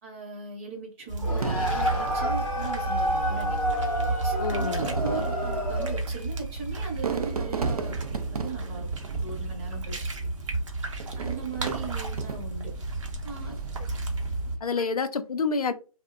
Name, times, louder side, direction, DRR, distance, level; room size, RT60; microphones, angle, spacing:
voice 1, 0.0-3.6 4.1-8.9 9.2-10.3 11.2-12.7 13.2-13.6 14.5-14.8, right 4 dB, 25° right, 0 dB, 0.7 m, -39 dB
sound 1, 1.1-14.6, right 3 dB, 55° right, 0.7 m, -32 dB
sound 2, 1.2-6.1, equal, 5° left, 0.4 m, -29 dB
Fireworks, 1.4-3.0 3.9-4.0 4.6-9.9 11.0-12.8 13.3-13.8, right 5 dB, 90° right, 0.4 m, -36 dB
voice 2, 4.4-4.8 11.6-11.7 14.6-15.7, left 4 dB, 85° left, 9 dB, 0.4 m, -28 dB
2.4 x 2.1 x 2.4 m, 0.34 s
figure-of-eight pair, 140°, 19 cm